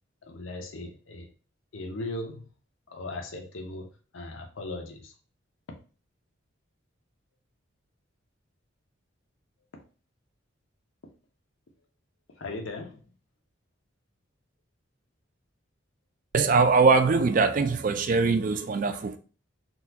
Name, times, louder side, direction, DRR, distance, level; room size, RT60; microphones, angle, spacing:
voice 1, 0.3-1.3 1.7-2.5 2.9-5.1 12.4-13.0, left 2 dB, 75° left, 0.7 m, -38 dB
voice 2, 16.3-19.2, right 4 dB, 40° right, 0.3 m, -22 dB
3.9 x 2.3 x 2.7 m
head